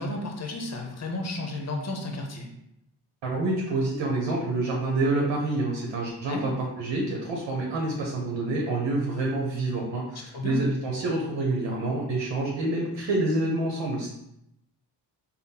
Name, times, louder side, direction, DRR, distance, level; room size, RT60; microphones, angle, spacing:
voice 1, 0.0-2.5 6.2-6.5 10.3-10.6, left 2 dB, 40° left, 2 dB, 0.8 m, -32 dB
voice 2, 3.2-14.1, right 2 dB, 75° right, -2 dB, 0.9 m, -27 dB
3.6 x 2.1 x 4.2 m, 0.81 s
cardioid pair, 80°, 43 cm